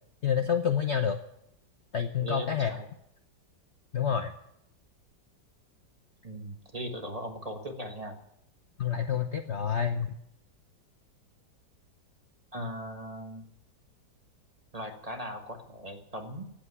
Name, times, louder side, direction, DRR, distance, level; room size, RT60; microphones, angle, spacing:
voice 1, 0.2-1.2 1.9-2.7 3.9-4.3 8.8-10.2, left 8 dB, 50° left, 7 dB, 0.9 m, -28 dB
voice 2, 2.2-2.9 6.2-8.2 12.5-13.5 14.7-16.4, equal, 20° right, 4 dB, 1.5 m, -38 dB
16.5 x 8.3 x 9.7 m, 0.76 s
omnidirectional pair, 2.0 m